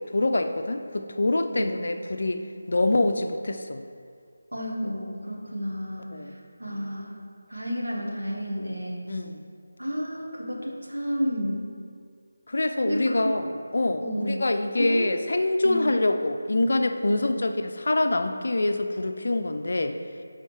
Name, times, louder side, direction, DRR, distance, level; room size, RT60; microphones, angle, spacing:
voice 1, 0.1-2.4 2.7-3.8 6.1-6.3 9.1-9.4 12.5-20.0, left 2 dB, 55° left, 7 dB, 0.4 m, -25 dB
voice 2, 4.5-6.2 6.6-7.2 7.5-9.0 9.8-11.7 12.9-13.5 14.0-14.4 14.8-15.4 15.6-16.0, equal, 80° right, -2 dB, 1.3 m, -31 dB
11.5 x 4.1 x 3.1 m, 2.2 s
figure-of-eight pair, 160°, 0 cm